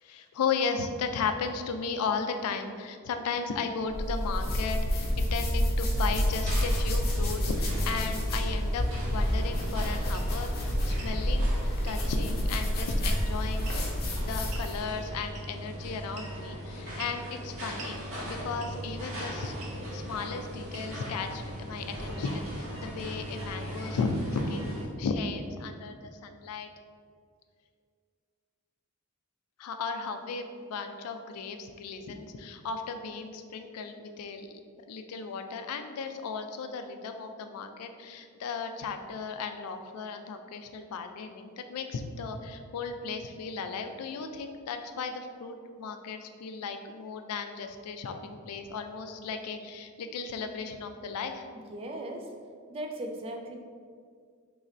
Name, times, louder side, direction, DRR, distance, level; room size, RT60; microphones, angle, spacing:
voice 1, 0.0-13.8 14.2-18.0 18.3-19.5 19.9-26.7 29.6-34.5 34.9-51.4, left 5 dB, 80° left, 6 dB, 0.3 m, -35 dB
sound 1, 3.9-14.8, equal, 45° left, 0.7 m, -28 dB
sound 2, 5.9-24.9, equal, 60° right, 0.9 m, -39 dB
sound 3, 10.1-10.3 10.9-11.2 11.8-12.0 13.6-14.0 14.5-14.7 15.3-15.7 16.1-16.5 17.0-17.2 17.8-18.0 18.6-18.9 19.6-19.8 20.7-21.1, right 4 dB, 85° right, 0.6 m, -45 dB
voice 2, 51.7-52.3 52.7-53.5, right 1 dB, 25° right, 2 dB, 0.3 m, -37 dB
3.0 x 2.5 x 4.1 m, 2.1 s
head